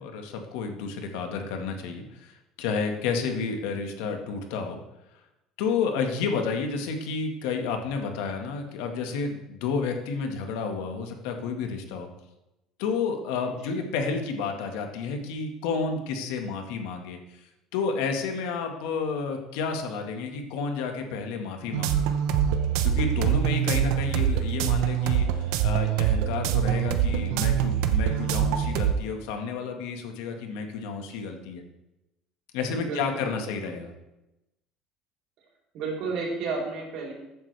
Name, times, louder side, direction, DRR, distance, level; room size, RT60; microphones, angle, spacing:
voice 1, 0.0-4.8 5.6-12.1 12.8-17.4 17.7-22.1 22.8-31.6 32.5-33.9, left 5 dB, 85° left, 4 dB, 1.6 m, -31 dB
sound 1, 21.7-28.9, right 9 dB, 85° right, 0.9 m, -24 dB
voice 2, 32.7-33.5 35.7-37.1, right 4 dB, 60° right, -1 dB, 3.8 m, -33 dB
14.5 x 8.8 x 3.4 m, 0.94 s
cardioid pair, 145°, 0 cm